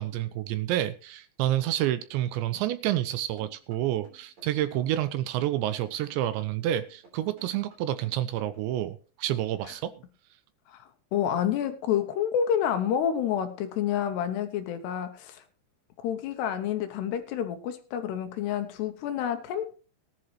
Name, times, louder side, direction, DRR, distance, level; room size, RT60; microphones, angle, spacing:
voice 1, 0.0-9.9, right 13 dB, 80° right, 14 dB, 2.8 m, -29 dB
sound 1, 3.4-8.7, right 4 dB, 35° right, 4.6 m, -57 dB
voice 2, 10.7-15.4 16.0-19.8, left 9 dB, 75° left, 8 dB, 2.8 m, -29 dB
18.5 x 10.5 x 3.1 m, 0.36 s
omnidirectional pair, 5.5 m